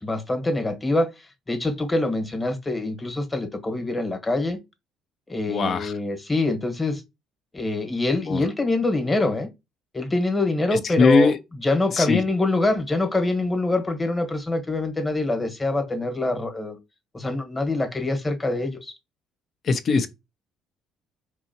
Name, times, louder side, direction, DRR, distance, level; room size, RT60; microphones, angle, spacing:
voice 1, 0.0-4.6 5.3-7.0 7.5-9.5 9.9-16.8 17.1-19.0, left 2 dB, 20° left, 1.3 m, -25 dB
voice 2, 5.5-5.9 8.3-8.4 11.0-11.4 11.9-12.2 19.6-20.1, left 4 dB, 50° left, 0.7 m, -20 dB
4.7 x 3.0 x 2.8 m
supercardioid pair, 70°, 0 cm